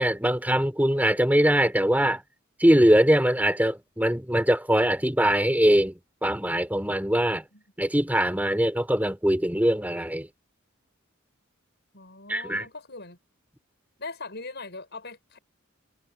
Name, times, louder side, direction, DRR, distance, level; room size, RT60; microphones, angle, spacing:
voice 1, 0.0-2.2 2.6-7.4 7.8-10.3 12.3-12.6, equal, 10° right, 3.6 m, -22 dB
voice 2, 7.3-7.6 11.9-13.2 14.0-15.4, left 3 dB, 55° left, 7.2 m, -41 dB
head